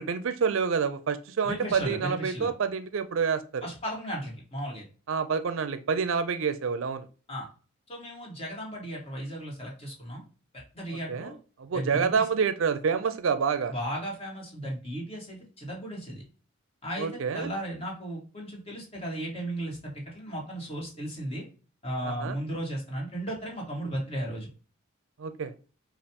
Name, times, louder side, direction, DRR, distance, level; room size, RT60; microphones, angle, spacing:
voice 1, 0.0-3.7 5.1-7.1 11.1-11.3 11.6-13.7 17.0-17.5 22.0-22.4 25.2-25.5, right 6 dB, 70° right, 11 dB, 0.4 m, -28 dB
voice 2, 1.4-2.5 3.6-4.8 7.3-7.5 7.9-10.2 10.5-11.4 11.7-12.2 13.7-16.2 16.8-21.4 21.8-24.5, equal, 30° left, -1 dB, 1.6 m, -35 dB
5.2 x 2.4 x 2.8 m, 0.36 s
head